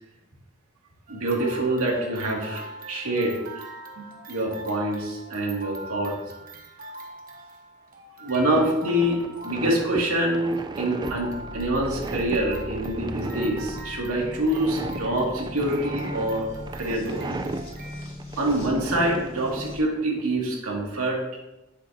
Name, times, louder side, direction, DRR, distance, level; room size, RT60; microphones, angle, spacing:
sound 1, 1.1-18.1, right 1 dB, 40° right, 1.1 m, -43 dB
voice 1, 1.1-3.6 4.3-6.2 8.2-16.5 16.7-17.2 18.4-21.2, right 1 dB, 85° right, -2 dB, 2.1 m, -26 dB
sound 2, 8.5-20.3, right 2 dB, 20° right, 0.4 m, -37 dB
sound 3, 11.1-19.8, left 1 dB, 25° left, 1.9 m, -39 dB
9.2 x 7.5 x 2.7 m, 0.97 s
head